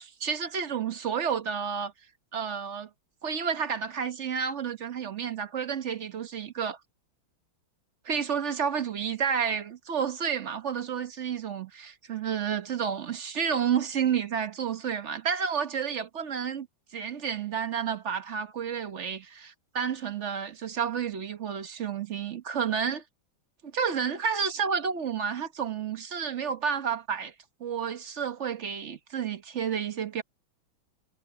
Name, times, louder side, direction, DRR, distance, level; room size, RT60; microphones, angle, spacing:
voice 1, 0.0-1.9 2.3-2.9 3.2-6.8 8.0-16.7 16.9-23.0 23.6-27.3 27.6-30.2, right 7 dB, 45° right, 1.1 m, -30 dB
omnidirectional pair, 2.2 m